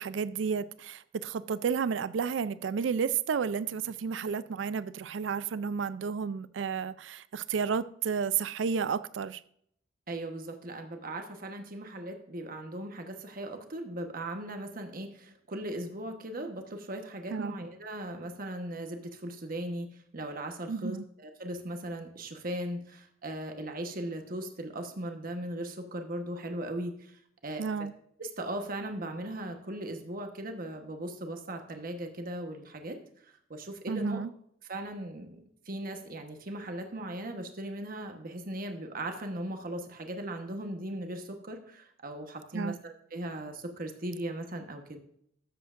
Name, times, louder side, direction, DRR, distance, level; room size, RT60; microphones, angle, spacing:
voice 1, 0.0-9.4 17.3-17.5 20.7-21.0 27.6-27.9 33.9-34.3 42.5-42.8, right 6 dB, 80° right, 0.4 m, -31 dB
voice 2, 10.1-19.9 20.1-27.6 28.2-34.2 34.7-45.0, right 1 dB, 50° right, 1.2 m, -38 dB
13.0 x 7.8 x 2.5 m
head